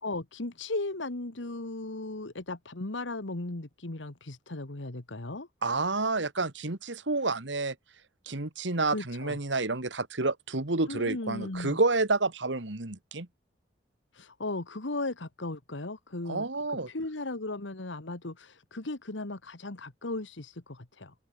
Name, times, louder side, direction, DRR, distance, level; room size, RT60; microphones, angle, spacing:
voice 1, 0.0-5.5 8.8-9.4 10.9-11.8 14.1-21.1, left 2 dB, 85° left, 1.7 m, -36 dB
voice 2, 5.6-7.8 8.3-13.3 16.3-16.9, right 3 dB, 75° right, 1.9 m, -29 dB
open air
head